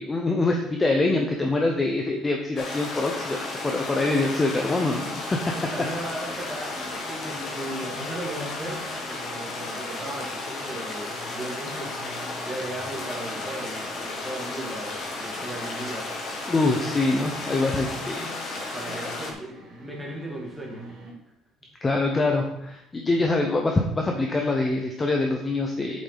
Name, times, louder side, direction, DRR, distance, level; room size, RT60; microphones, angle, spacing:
voice 1, 0.0-5.5 15.8-15.9 16.5-18.3 21.8-26.0, left 2 dB, 15° left, 2 dB, 0.7 m, -25 dB
sound 1, 2.6-19.3, left 2 dB, 40° left, 1.7 m, -34 dB
voice 2, 4.0-4.4 5.3-8.8 9.1-12.0 12.4-16.1 18.7-20.9, right 1 dB, 5° right, -2 dB, 1.9 m, -37 dB
sound 2, 5.4-21.1, right 1 dB, 35° right, 3.4 m, -47 dB
8.9 x 7.2 x 4.0 m, 0.83 s
cardioid pair, 170°, 0 cm